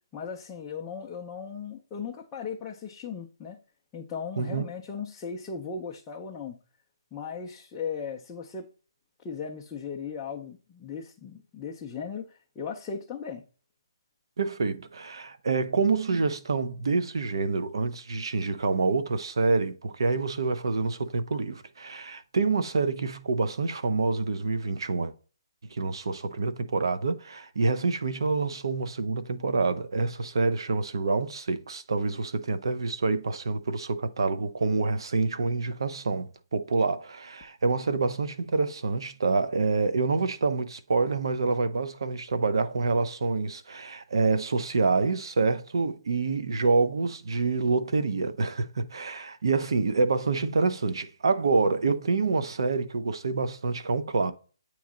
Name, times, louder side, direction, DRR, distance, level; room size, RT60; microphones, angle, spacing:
voice 1, 0.1-3.6 3.9-6.6 7.1-8.7 9.2-13.4, left 6 dB, 10° left, 0.4 m, -37 dB
voice 2, 14.4-25.1 25.7-54.3, right 4 dB, 65° right, 0.7 m, -27 dB
8.5 x 3.1 x 3.7 m
hypercardioid pair, 170°, 3 cm